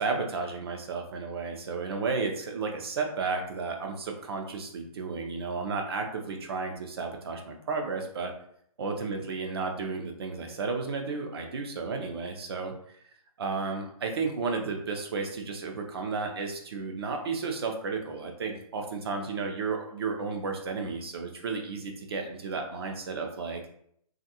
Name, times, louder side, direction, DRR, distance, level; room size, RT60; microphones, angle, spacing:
voice 1, 0.0-8.3 8.8-12.7 13.4-23.6, right 4 dB, 40° right, 3 dB, 0.6 m, -33 dB
3.1 x 2.5 x 2.8 m, 0.67 s
hypercardioid pair, 155°, 20 cm